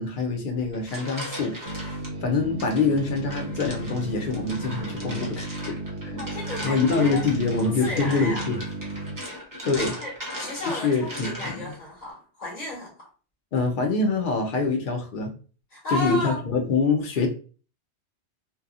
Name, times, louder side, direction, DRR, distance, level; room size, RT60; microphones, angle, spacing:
voice 1, 0.0-1.6 2.2-5.8 6.0-6.2 6.6-8.6 9.6-9.9 10.7-11.7 13.5-15.3 15.9-17.3, left 4 dB, 55° left, 0.7 m, -25 dB
sound 1, 0.6-2.1 2.6-11.8, equal, 20° right, 0.6 m, -38 dB
sound 2, 1.6-9.2, right 2 dB, 50° right, 0.8 m, -34 dB
voice 2, 6.2-7.2 7.6-8.5 10.0-13.1 15.7-16.4, left 1 dB, 35° left, 1.4 m, -33 dB
2.8 x 2.3 x 2.4 m
omnidirectional pair, 1.2 m